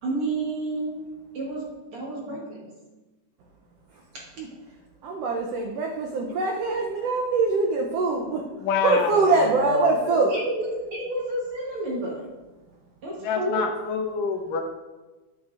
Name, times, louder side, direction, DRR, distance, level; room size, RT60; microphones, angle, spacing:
voice 1, 0.0-1.0 1.3-2.7 4.1-4.3 10.0-12.3 13.0-13.7, right 2 dB, 60° right, -3 dB, 1.5 m, -30 dB
voice 2, 5.0-10.4, right 3 dB, 90° right, 1 dB, 1.3 m, -24 dB
voice 3, 8.6-9.1 9.6-9.9 13.2-14.6, left 6 dB, 90° left, 4 dB, 2.5 m, -26 dB
9.5 x 7.4 x 2.4 m, 1.2 s
omnidirectional pair, 3.7 m